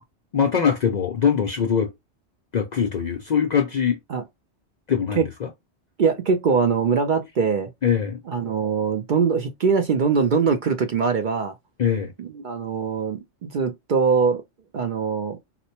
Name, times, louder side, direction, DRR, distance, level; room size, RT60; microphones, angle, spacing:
voice 1, 0.3-1.9 2.5-4.0 4.9-5.5 7.8-8.2 11.8-12.1, left 7 dB, 55° left, 0.5 m, -22 dB
voice 2, 6.0-7.7 8.3-11.5 12.2-14.4 14.7-15.4, right 5 dB, 55° right, 0.6 m, -22 dB
4.1 x 2.1 x 2.8 m
omnidirectional pair, 1.2 m